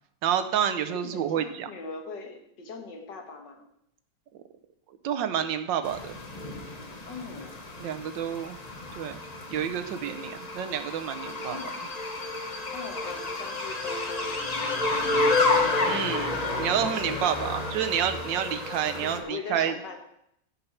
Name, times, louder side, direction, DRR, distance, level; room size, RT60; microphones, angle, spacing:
voice 1, 0.2-1.7 5.0-6.2 7.8-8.6 8.9-9.2 9.5-11.6 15.8-19.7, right 9 dB, 80° right, 10 dB, 1.5 m, -29 dB
voice 2, 0.9-3.7 7.1-7.6 11.5-11.8 12.7-15.3 17.2-17.5 19.0-20.0, left 4 dB, 70° left, 3 dB, 2.0 m, -41 dB
sound 1, 5.8-19.2, left 2 dB, 25° left, 0.9 m, -30 dB
15.5 x 5.4 x 4.4 m, 0.76 s
omnidirectional pair, 2.0 m